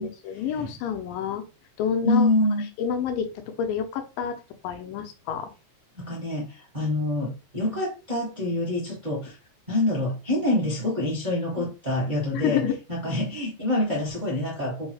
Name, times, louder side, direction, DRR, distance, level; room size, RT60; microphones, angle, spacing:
voice 1, 0.0-1.5 1.8-2.3 2.8-5.5 11.6-11.7 12.3-12.7, left 7 dB, 85° left, 6 dB, 2.4 m, -29 dB
voice 2, 2.0-2.7 6.0-9.4 9.7-12.6 12.9-14.9, left 2 dB, 30° right, -4 dB, 0.7 m, -26 dB
5.4 x 2.1 x 4.7 m, 0.30 s
omnidirectional pair, 3.9 m